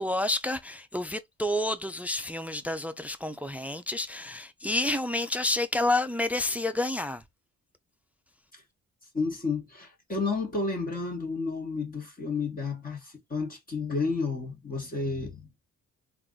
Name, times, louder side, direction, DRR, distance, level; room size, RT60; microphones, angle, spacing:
voice 1, 0.0-7.2, left 2 dB, 5° right, 0.3 m, -29 dB
voice 2, 9.1-15.6, left 4 dB, 30° left, 1.2 m, -31 dB
3.4 x 2.4 x 3.7 m
cardioid pair, 90°, 30 cm